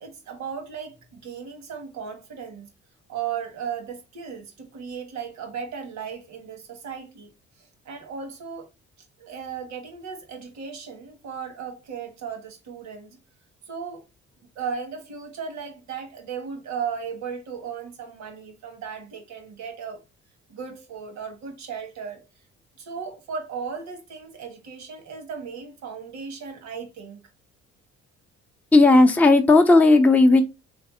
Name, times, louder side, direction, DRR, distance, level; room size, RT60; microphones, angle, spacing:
voice 1, 0.0-2.7 3.1-7.3 7.8-8.7 9.2-13.1 13.7-14.0 14.5-20.0 20.5-22.2 22.8-27.2, right 6 dB, 70° right, 1.5 m, -36 dB
voice 2, 28.7-30.4, left 2 dB, 5° left, 0.7 m, -14 dB
3.3 x 3.3 x 4.2 m
cardioid pair, 80°, 29 cm